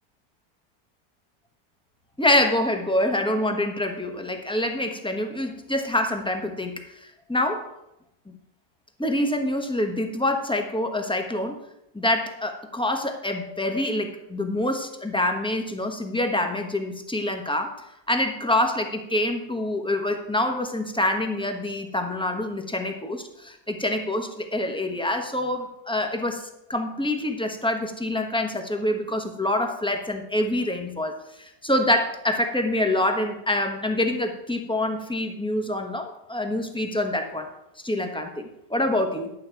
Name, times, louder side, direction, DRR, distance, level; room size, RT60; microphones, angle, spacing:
voice 1, 2.2-7.0 7.3-7.7 9.0-11.6 11.9-17.7 18.1-37.5 37.8-39.3, left 1 dB, 5° left, 4 dB, 0.6 m, -26 dB
11.5 x 8.6 x 4.5 m, 0.84 s
omnidirectional pair, 1.9 m